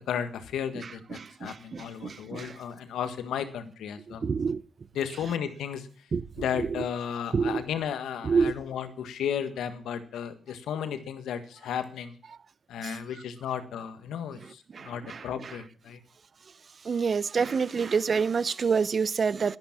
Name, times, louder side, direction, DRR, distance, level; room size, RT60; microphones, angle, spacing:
voice 1, 0.0-4.3 4.9-5.9 6.4-12.1 12.7-16.0, left 8 dB, 80° left, 1.6 m, -34 dB
voice 2, 1.1-2.6 4.2-4.6 6.1-6.2 6.6-6.8 7.3-7.6 8.2-8.5 12.8-13.0 14.7-15.5 16.8-19.6, right 5 dB, 55° right, 0.7 m, -27 dB
11.5 x 11.5 x 7.5 m
supercardioid pair, 45°, 0 cm